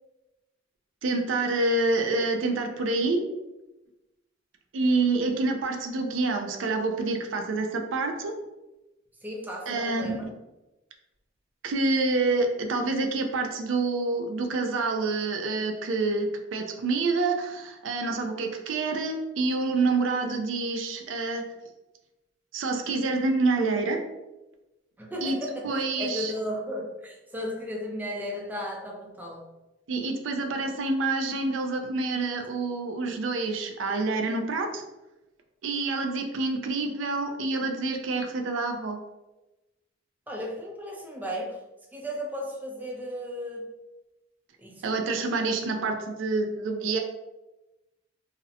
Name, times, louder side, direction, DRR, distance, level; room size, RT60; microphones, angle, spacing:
voice 1, 1.0-3.2 4.7-8.3 9.7-10.3 11.6-21.4 22.5-24.0 25.2-25.4 25.6-26.3 29.9-34.8 35.6-39.0 44.8-47.0, right 3 dB, 75° right, 4 dB, 0.4 m, -27 dB
voice 2, 9.2-10.3 25.0-25.7 26.0-29.5 40.3-41.6 41.9-43.7 44.6-45.0, equal, 10° right, -1 dB, 0.4 m, -35 dB
2.5 x 2.0 x 2.7 m, 1.0 s
head